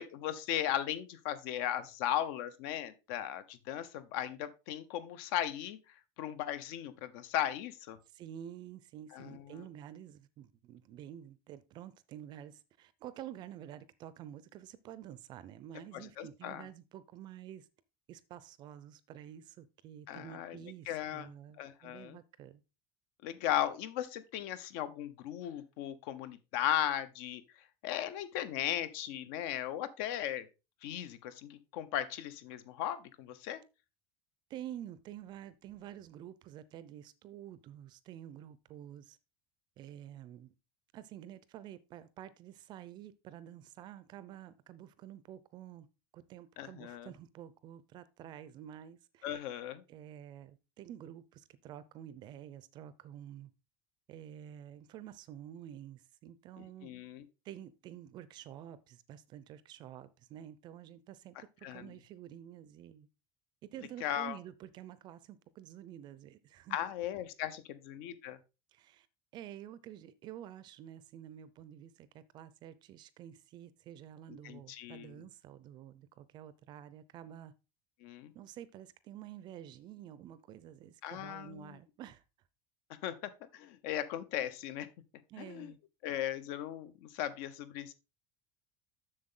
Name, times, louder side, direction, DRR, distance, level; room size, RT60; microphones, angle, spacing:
voice 1, 0.0-5.8 6.2-8.0 9.1-9.5 15.9-16.7 20.1-20.6 20.9-21.3 21.6-22.2 23.2-27.4 27.8-30.5 30.8-33.6 46.6-47.1 49.2-49.8 56.6-57.2 61.6-61.9 64.0-64.4 66.7-68.4 74.4-75.2 78.0-78.3 81.0-81.8 83.0-84.9 85.4-85.7 86.0-87.9, left 11 dB, 65° left, 0.9 m, -37 dB
voice 2, 8.1-17.7 18.1-22.6 34.5-39.2 39.8-40.5 40.9-45.9 46.1-49.3 49.9-53.5 54.1-56.9 57.4-63.1 63.6-66.8 68.7-69.1 69.3-77.5 78.3-82.2 85.3-85.8, right 11 dB, 35° right, 0.5 m, -49 dB
7.6 x 6.6 x 3.7 m
cardioid pair, 180°, 13 cm